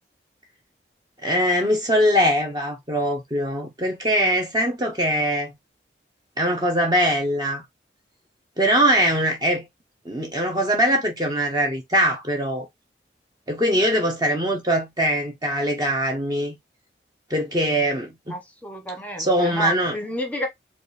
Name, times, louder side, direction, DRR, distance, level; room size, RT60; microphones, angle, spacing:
voice 1, 1.2-5.5 6.4-7.6 8.6-9.7 10.1-12.7 13.5-16.6 17.3-18.4 19.2-19.9, equal, 20° right, 0.7 m, -22 dB
voice 2, 18.3-20.5, left 1 dB, 10° left, 1.0 m, -30 dB
4.8 x 2.4 x 3.2 m
head